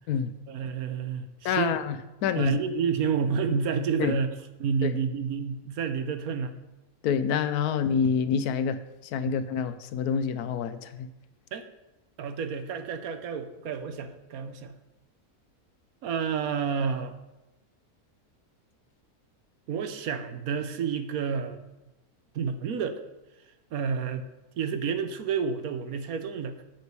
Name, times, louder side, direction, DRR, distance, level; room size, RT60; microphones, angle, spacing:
voice 1, 0.5-1.8 2.3-6.5 9.3-9.4 11.5-11.6 12.2-14.7 16.0-17.1 19.7-21.6 22.3-23.0 23.7-24.3 24.6-26.6, right 6 dB, 75° right, 9 dB, 1.2 m, -30 dB
voice 2, 1.4-2.0 2.2-2.6 4.0-4.1 4.8-4.9 7.0-8.8 9.1-11.1, left 7 dB, 80° left, 12 dB, 1.1 m, -27 dB
8.1 x 7.2 x 4.7 m, 0.99 s
omnidirectional pair, 1.6 m